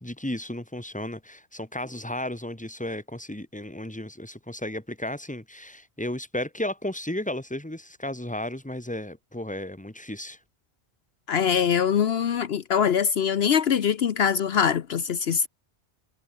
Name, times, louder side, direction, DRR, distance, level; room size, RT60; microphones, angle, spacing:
voice 1, 0.0-10.4, left 1 dB, 5° left, 2.2 m, -34 dB
voice 2, 11.3-15.5, left 7 dB, 70° left, 1.0 m, -23 dB
omnidirectional pair, 1.1 m